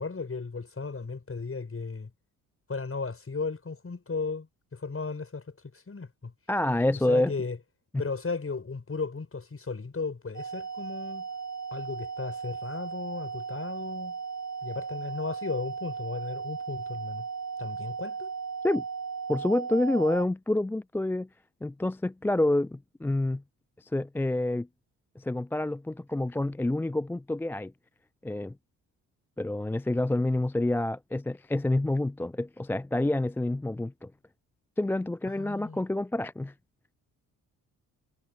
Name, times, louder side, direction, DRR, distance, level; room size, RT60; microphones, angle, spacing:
voice 1, 0.0-2.1 2.7-6.3 7.1-7.6 8.0-11.3 11.7-14.2 14.6-17.3 17.6-18.3 35.4-35.8, left 4 dB, 30° left, 7.7 m, -35 dB
voice 2, 6.5-7.3 7.9-8.0 18.6-18.8 19.3-21.3 21.6-23.4 23.8-24.7 25.2-27.7 28.2-28.6 29.4-34.1 34.8-36.5, left 1 dB, 5° left, 0.4 m, -28 dB
sound 1, 10.3-20.2, right 6 dB, 40° right, 4.7 m, -36 dB
hypercardioid pair, 45°, 44 cm